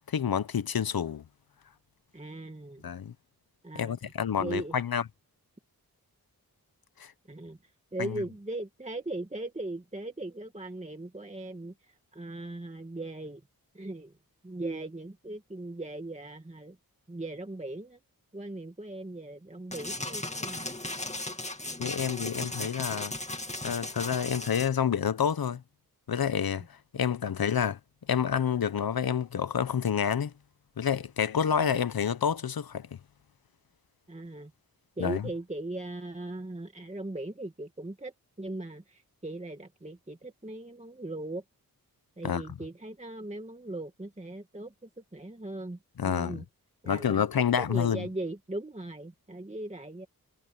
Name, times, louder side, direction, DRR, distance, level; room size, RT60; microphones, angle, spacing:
voice 1, 0.1-1.2 2.8-3.1 3.7-5.0 7.0-7.1 8.0-8.2 21.8-23.1 23.6-25.6 26.1-26.6 26.9-27.8 28.1-30.3 30.8-32.9 35.0-35.2 42.2-42.4 46.0-46.4 46.9-48.0, left 8 dB, 70° left, 1.0 m, -28 dB
voice 2, 2.1-2.9 3.6-4.1 4.4-4.7 7.3-13.4 13.7-14.1 14.4-16.8 17.1-18.0 18.3-20.6 31.6-31.8 34.1-34.5 35.0-38.1 38.4-41.4 42.2-46.4 46.8-47.2 47.6-50.1, right 2 dB, 20° right, 2.2 m, -39 dB
sound 1, 19.7-24.7, left 2 dB, 20° left, 2.4 m, -36 dB
wide cardioid pair, 70°, 37 cm